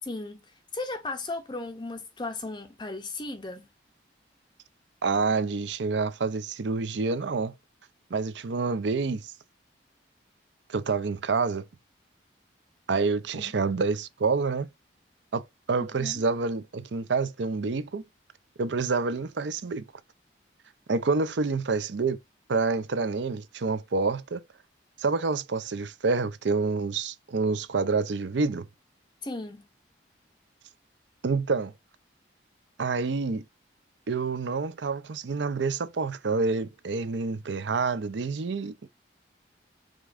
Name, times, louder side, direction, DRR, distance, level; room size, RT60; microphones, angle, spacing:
voice 1, 0.1-0.4 0.7-3.7 13.3-13.5 15.9-16.2 29.2-29.7, left 2 dB, 25° left, 0.6 m, -36 dB
voice 2, 5.0-7.5 8.1-9.3 10.7-11.7 12.9-14.7 15.3-18.0 18.6-19.9 20.9-22.2 22.5-24.4 25.0-28.7 31.2-31.7 32.8-33.4 34.1-38.9, right 4 dB, 75° right, 0.5 m, -28 dB
5.1 x 3.6 x 2.4 m
head